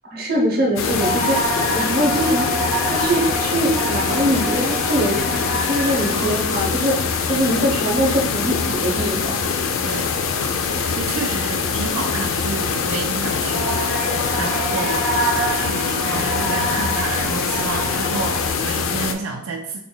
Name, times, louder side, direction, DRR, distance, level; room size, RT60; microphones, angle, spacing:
voice 1, 0.0-1.4 1.7-2.5 2.9-7.0 7.3-9.4, equal, 50° right, 0 dB, 0.8 m, -22 dB
sound 1, 0.8-19.1, left 5 dB, 80° left, 0.4 m, -23 dB
sound 2, 0.9-18.5, right 1 dB, 5° left, 1.3 m, -29 dB
voice 2, 6.1-6.5 9.8-10.1 10.9-19.8, right 4 dB, 85° right, 2 dB, 0.4 m, -30 dB
3.9 x 3.8 x 2.2 m, 0.72 s
head